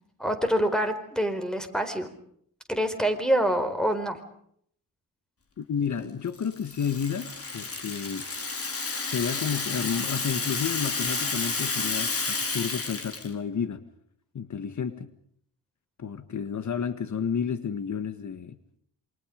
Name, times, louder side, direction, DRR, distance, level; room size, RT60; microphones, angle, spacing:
voice 1, 0.2-2.1 2.7-4.2, equal, ahead, 8 dB, 4.4 m, -26 dB
voice 2, 5.6-8.3 9.0-13.8 14.3-15.1 16.0-18.6, left 7 dB, 60° left, 11 dB, 1.6 m, -31 dB
Rattle (instrument), 6.4-13.3, left 4 dB, 45° left, 4.5 m, -31 dB
28.0 x 26.0 x 5.2 m, 0.67 s
wide cardioid pair, 110°, 33 cm